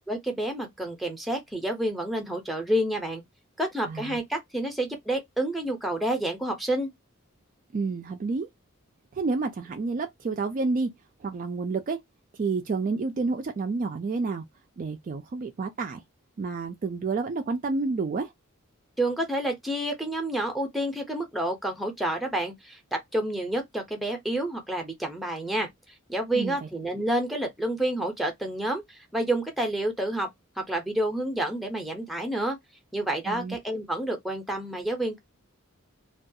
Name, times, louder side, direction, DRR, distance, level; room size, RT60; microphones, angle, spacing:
voice 1, 0.1-3.2 3.6-6.9 19.0-25.7 26.1-30.3 30.6-32.6 32.9-35.2, right 1 dB, ahead, 0.6 m, -29 dB
voice 2, 3.9-4.2 7.7-8.5 9.1-10.9 11.2-12.0 12.3-14.4 14.8-16.0 16.4-18.3 26.3-26.7 33.3-33.6, right 4 dB, 35° right, 0.3 m, -29 dB
2.3 x 2.3 x 2.6 m
head